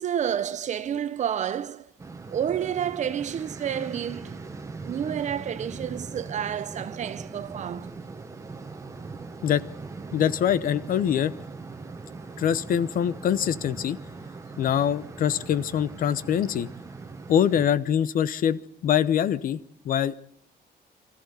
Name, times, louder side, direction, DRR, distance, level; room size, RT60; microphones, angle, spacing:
voice 1, 0.0-1.9 2.3-4.4 4.8-7.9, right 9 dB, 45° right, 0.9 m, -29 dB
sound 1, 2.0-17.7, right 4 dB, 20° right, 1.3 m, -40 dB
voice 2, 10.1-11.3 12.4-14.0 14.6-16.7 17.3-19.6 19.8-20.1, left 9 dB, 55° left, 0.9 m, -24 dB
24.0 x 14.5 x 8.2 m
cardioid pair, 155°, 17 cm